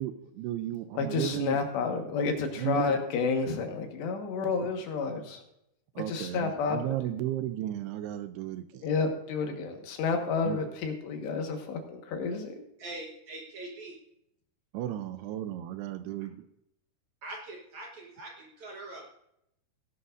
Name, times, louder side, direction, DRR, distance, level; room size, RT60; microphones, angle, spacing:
voice 1, 0.0-1.6 2.6-3.0 4.4-4.5 6.0-8.9 10.4-10.6 14.7-16.5, right 13 dB, 80° right, 11 dB, 2.5 m, -34 dB
voice 2, 1.0-5.4 6.1-6.9 8.8-12.6, left 4 dB, 80° left, 4 dB, 3.7 m, -30 dB
voice 3, 12.8-14.0 17.2-19.1, right 2 dB, 65° right, 0 dB, 1.9 m, -43 dB
17.5 x 11.5 x 2.6 m, 0.78 s
omnidirectional pair, 4.9 m